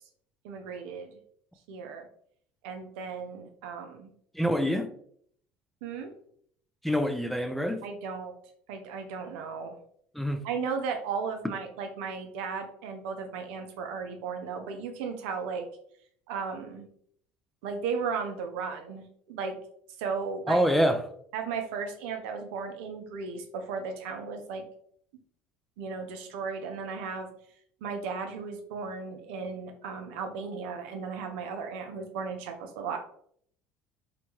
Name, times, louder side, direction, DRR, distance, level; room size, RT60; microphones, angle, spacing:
voice 1, 0.4-1.1 1.7-2.1 2.6-4.1 5.8-6.1 7.8-8.3 8.7-9.8 10.4-15.7 16.3-16.9 17.6-19.6 20.0-20.6 21.3-24.6 25.8-27.3 27.8-33.0, right 5 dB, 80° right, 0.5 m, -35 dB
voice 2, 4.3-4.9 6.8-7.8 10.1-10.4 20.5-21.0, equal, ahead, 0.4 m, -25 dB
2.9 x 2.2 x 2.9 m
supercardioid pair, 80°, 6 cm